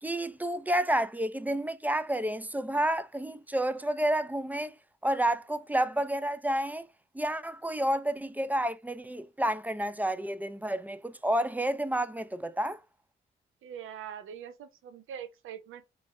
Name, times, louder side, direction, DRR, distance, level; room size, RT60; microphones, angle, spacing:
voice 1, 0.0-4.7 5.0-6.8 7.1-12.8, right 1 dB, 10° right, 0.3 m, -30 dB
voice 2, 13.6-15.8, right 9 dB, 75° right, 0.5 m, -43 dB
3.1 x 2.4 x 2.6 m
supercardioid pair, 60°, 21 cm